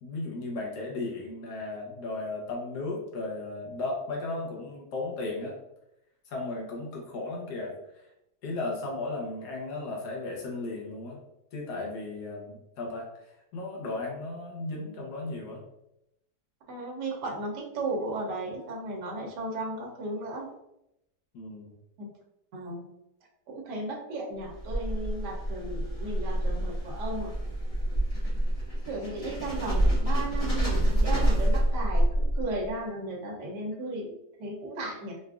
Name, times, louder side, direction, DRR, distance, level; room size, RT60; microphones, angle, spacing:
voice 1, 0.0-5.6 6.3-7.7 8.4-11.2 11.5-13.1 13.5-15.6 21.3-21.7, left 2 dB, 75° left, -1 dB, 1.4 m, -35 dB
voice 2, 16.7-20.5 22.0-22.1 22.5-22.9 23.5-27.3 28.9-35.2, right 2 dB, 80° right, -1 dB, 1.3 m, -35 dB
sound 1, 24.4-32.7, right 1 dB, 30° left, 0.8 m, -27 dB
4.8 x 2.4 x 2.3 m, 0.85 s
omnidirectional pair, 1.8 m